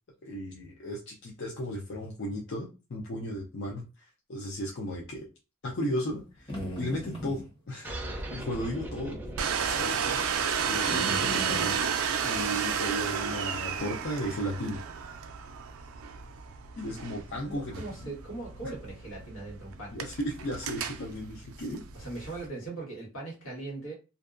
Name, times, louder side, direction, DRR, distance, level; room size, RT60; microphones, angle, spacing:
voice 1, 0.2-5.3 5.6-8.0 8.3-9.2 9.6-10.0 10.7-11.9 12.2-14.8 16.8-18.1 19.9-21.8, equal, 60° left, 0.5 m, -35 dB
sound 1, 6.2-7.5 8.8-9.1 9.5-9.6 10.9-11.8, equal, 25° left, 0.9 m, -37 dB
sound 2, 7.8-12.9, right 1 dB, 10° right, 0.5 m, -41 dB
Domestic sounds home sounds, 9.4-22.5, right 7 dB, 85° right, 0.4 m, -32 dB
voice 2, 17.4-20.0 21.9-23.9, right 2 dB, 85° left, 1.4 m, -40 dB
2.6 x 2.1 x 2.4 m
head